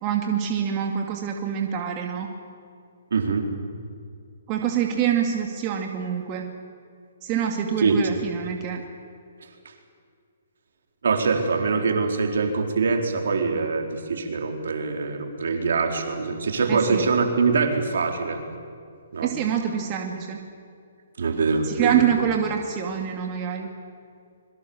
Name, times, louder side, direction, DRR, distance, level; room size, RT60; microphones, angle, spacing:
voice 1, 0.0-2.3 4.5-6.5 7.2-8.8 16.7-17.0 19.2-20.4 21.6-23.7, right 9 dB, 30° right, 2 dB, 2.3 m, -26 dB
voice 2, 3.1-3.5 7.8-8.0 11.0-18.4 19.1-19.3 21.2-22.0, right 4 dB, 70° right, 3 dB, 4.1 m, -23 dB
26.0 x 22.5 x 7.1 m, 2.3 s
hypercardioid pair, 145°, 0 cm